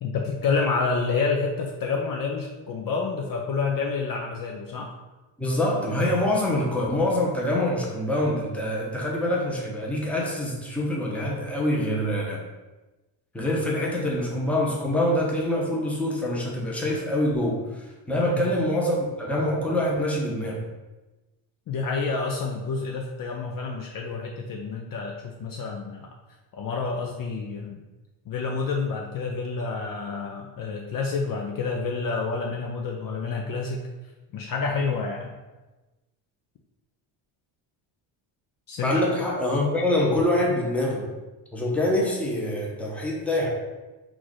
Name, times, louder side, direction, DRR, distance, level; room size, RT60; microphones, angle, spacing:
voice 1, 0.0-4.9 18.2-18.5 21.7-26.1 26.5-27.8 28.3-33.8 34.3-35.4 38.7-38.9, left 4 dB, 45° left, 1 dB, 0.5 m, -28 dB
voice 2, 5.4-12.4 13.3-20.6 38.8-41.1 41.5-43.5, left 1 dB, 5° left, -3 dB, 0.8 m, -25 dB
4.6 x 2.5 x 4.0 m, 1.1 s
cardioid pair, 110°, 50 cm